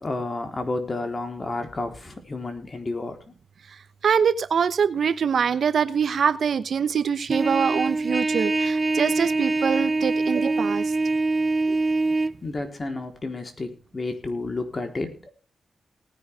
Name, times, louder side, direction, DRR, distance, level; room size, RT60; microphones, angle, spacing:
voice 1, 0.0-3.2 12.4-15.3, left 2 dB, 35° left, 5 dB, 3.7 m, -31 dB
voice 2, 3.7-10.9 11.7-11.8, right 7 dB, 70° right, 13 dB, 1.0 m, -24 dB
Trumpet, 7.3-12.3, right 3 dB, 25° right, 0.5 m, -24 dB
19.0 x 10.0 x 3.5 m, 0.35 s
cardioid pair, 85°, 0 cm